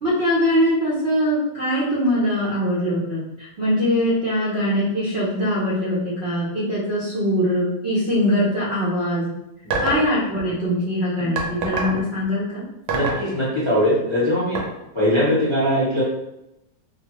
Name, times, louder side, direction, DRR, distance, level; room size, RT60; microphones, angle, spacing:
voice 1, 0.0-9.3 9.8-12.6, equal, 55° right, -7 dB, 0.7 m, -22 dB
sound 1, 9.7-10.1 11.4-12.0 12.9-13.3 14.5-14.6, right 4 dB, 80° right, 1.2 m, -23 dB
voice 2, 12.9-14.7 14.9-16.0, equal, 35° left, -9 dB, 0.4 m, -21 dB
3.1 x 2.2 x 2.9 m, 0.89 s
omnidirectional pair, 1.8 m